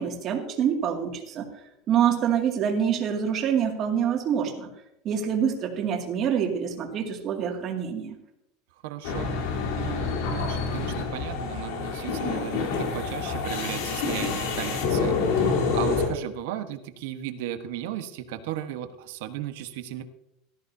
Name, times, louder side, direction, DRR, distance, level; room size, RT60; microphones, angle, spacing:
voice 1, 0.0-1.5 1.9-4.7 5.0-8.2, right 8 dB, 35° right, 2 dB, 2.2 m, -26 dB
voice 2, 8.8-9.3 9.8-20.0, right 11 dB, 75° right, 8 dB, 1.2 m, -35 dB
sound 1, 9.0-16.1, left 5 dB, 75° left, 3.5 m, -27 dB
17.5 x 13.5 x 2.8 m, 0.83 s
supercardioid pair, 155°, 0 cm